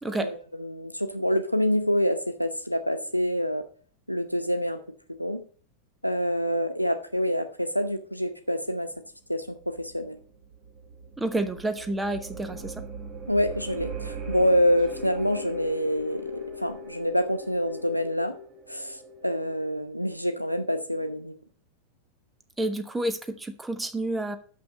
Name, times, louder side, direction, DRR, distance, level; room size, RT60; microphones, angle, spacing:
voice 1, 0.0-0.3 11.2-12.8 22.6-24.4, right 2 dB, 10° right, 9 dB, 1.2 m, -29 dB
voice 2, 0.6-3.6 4.1-4.8 5.2-5.4 6.0-8.9 9.3-10.2 13.3-16.2 16.6-18.3 18.7-21.3, equal, 90° left, 8 dB, 0.9 m, -26 dB
sound 1, 9.4-19.8, right 1 dB, 35° right, 2.9 m, -39 dB
6.7 x 5.9 x 7.4 m, 0.43 s
figure-of-eight pair, 90°, 0 cm